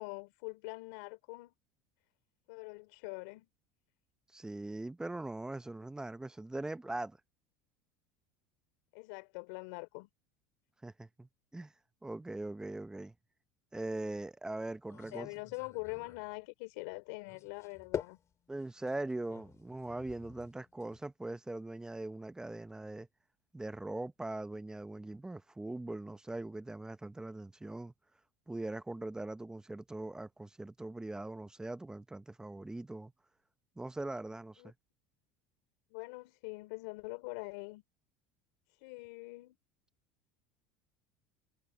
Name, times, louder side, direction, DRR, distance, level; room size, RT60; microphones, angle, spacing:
voice 1, 0.0-1.5 2.5-3.5 8.9-10.1 15.1-18.2 34.6-34.7 35.9-37.8 38.7-39.6, left 28 dB, 75° left, 3.3 m, -44 dB
voice 2, 4.3-7.2 10.8-11.7 12.0-13.1 13.7-15.3 18.5-23.1 23.5-27.9 28.5-33.1 33.8-34.7, right 2 dB, 10° right, 0.7 m, -41 dB
sound 1, 14.8-16.4 17.3-21.1, left 8 dB, 35° left, 3.2 m, -46 dB
supercardioid pair, 115°, 9 cm